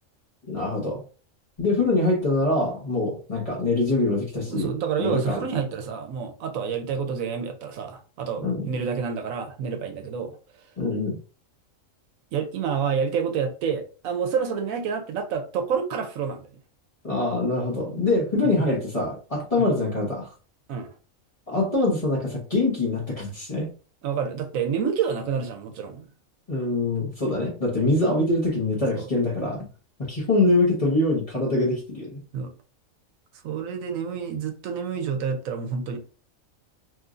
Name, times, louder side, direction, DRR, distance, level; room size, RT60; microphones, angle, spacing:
voice 1, 0.5-1.0 1.6-4.7 5.0-5.4 8.4-8.7 10.8-11.2 17.0-20.3 21.5-23.7 26.5-29.7 30.1-32.2, left 2 dB, 30° left, 0.9 m, -24 dB
voice 2, 4.5-10.4 12.3-16.4 19.5-19.7 20.7-20.9 24.0-26.1 28.9-29.1 32.3-32.5 33.4-36.0, right 6 dB, 85° right, 1.0 m, -28 dB
3.0 x 2.5 x 2.4 m
omnidirectional pair, 1.4 m